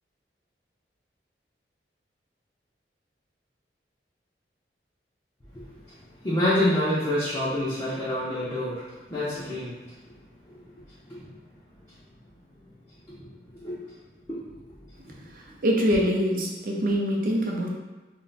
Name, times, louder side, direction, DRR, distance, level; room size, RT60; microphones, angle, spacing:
voice 1, 5.7-9.8 10.1-10.2 10.5-10.7 11.0-11.3 13.1-13.2 13.5-13.8 14.3-14.4 15.0-15.1, left 1 dB, 20° left, -12 dB, 0.5 m, -28 dB
voice 2, 15.6-17.7, equal, 50° right, -1 dB, 0.5 m, -24 dB
2.4 x 2.1 x 3.8 m, 1.2 s
head